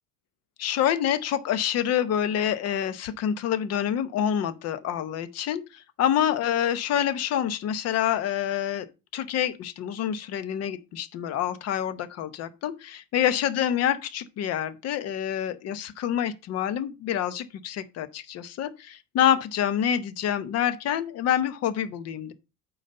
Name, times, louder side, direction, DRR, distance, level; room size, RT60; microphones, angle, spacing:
voice 1, 0.6-8.9 9.1-22.3, left 10 dB, 45° left, 0.8 m, -27 dB
9.0 x 4.0 x 5.4 m
cardioid pair, 175°, 36 cm